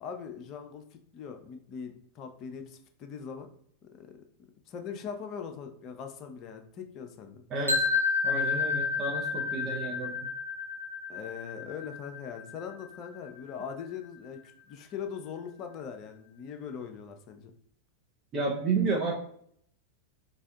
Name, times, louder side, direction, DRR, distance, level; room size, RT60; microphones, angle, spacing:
voice 1, 0.0-0.8 1.1-3.5 3.9-4.2 4.7-7.4 11.1-14.4 14.7-17.5, left 7 dB, 35° left, 6 dB, 0.5 m, -41 dB
voice 2, 7.5-7.8 8.2-10.1 18.3-19.1, right 4 dB, 30° right, -3 dB, 0.6 m, -31 dB
sound 1, 7.7-13.6, left 5 dB, 85° right, 0.7 m, -31 dB
4.2 x 2.6 x 2.3 m, 0.65 s
figure-of-eight pair, 90°, 0 cm